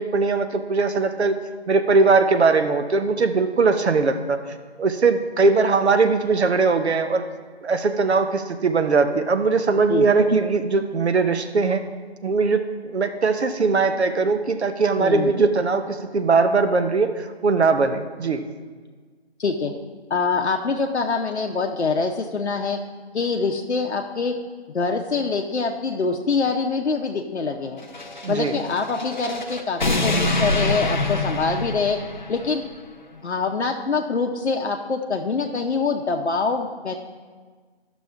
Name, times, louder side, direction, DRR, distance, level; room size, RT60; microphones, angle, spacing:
voice 1, 0.0-1.4 1.7-4.4 4.8-7.2 7.6-11.8 12.2-18.5 28.2-28.6, right 4 dB, 75° right, 8 dB, 0.8 m, -20 dB
voice 2, 15.0-15.3 19.4-19.7 20.1-22.8 23.1-24.4 24.7-27.8 28.3-32.0 32.3-32.6 33.2-36.9, left 4 dB, 75° left, 3 dB, 0.7 m, -24 dB
sound 1, 27.8-32.6, left 2 dB, 45° left, 0.6 m, -25 dB
11.5 x 6.1 x 3.4 m, 1.5 s
figure-of-eight pair, 170°, 33 cm